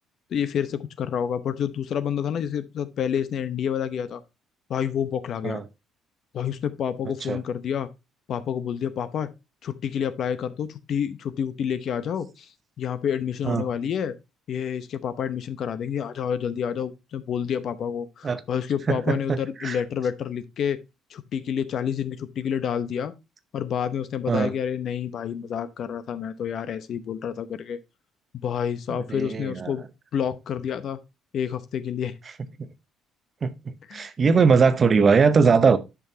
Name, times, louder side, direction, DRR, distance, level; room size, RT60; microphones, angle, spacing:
voice 1, 0.3-4.2 4.7-5.6 6.3-7.9 8.3-9.3 9.6-12.5 12.8-14.2 14.5-20.8 21.1-23.1 23.5-27.8 28.4-29.8 30.1-31.0 31.3-32.1 33.9-34.1, left 8 dB, 50° left, 0.8 m, -28 dB
voice 2, 18.9-19.8 24.3-24.5 28.9-29.7 33.4-33.5 33.9-35.8, right 5 dB, 30° right, 0.8 m, -20 dB
10.5 x 6.1 x 2.7 m
cardioid pair, 135°, 0 cm